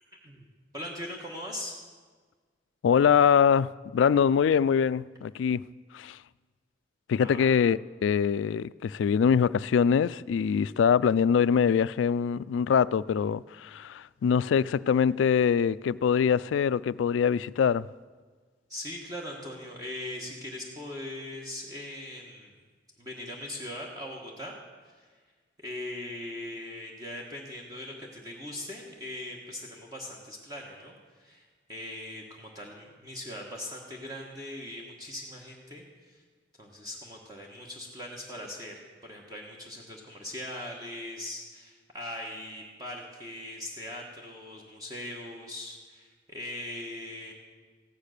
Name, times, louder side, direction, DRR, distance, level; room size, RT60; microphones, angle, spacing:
voice 1, 0.7-1.8 7.2-7.5 18.7-22.5 23.0-24.6 24.8-25.1 25.6-36.2 36.6-47.3, left 1 dB, 20° right, 1.4 m, -40 dB
voice 2, 2.8-5.6 5.9-6.2 7.1-17.9, left 7 dB, 90° left, 0.3 m, -24 dB
14.5 x 10.0 x 6.6 m
head